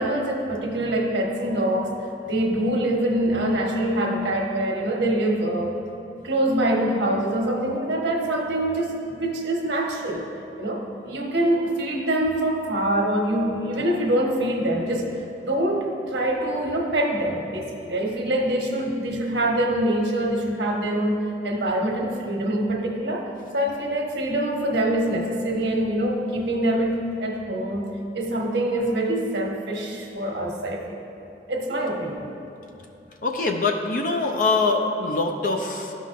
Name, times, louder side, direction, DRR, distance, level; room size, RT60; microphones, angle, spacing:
voice 1, 0.0-1.9 2.2-5.7 6.2-10.2 10.6-15.1 15.4-23.3 23.5-31.0 31.5-32.2, right 1 dB, 85° right, 0 dB, 1.1 m, -24 dB
voice 2, 33.2-35.9, left 3 dB, 50° left, 3 dB, 0.4 m, -23 dB
12.5 x 5.4 x 2.5 m, 2.8 s
head